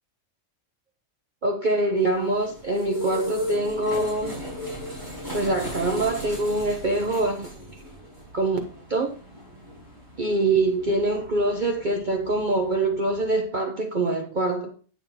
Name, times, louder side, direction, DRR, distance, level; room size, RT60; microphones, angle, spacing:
voice 1, 1.4-4.3 5.3-7.5 8.3-8.6 8.9-9.1 10.2-14.7, right 2 dB, 40° right, 1.0 m, -24 dB
sound 1, 2.0-13.4, equal, 15° right, 6.2 m, -37 dB
10.5 x 7.0 x 3.9 m
omnidirectional pair, 1.4 m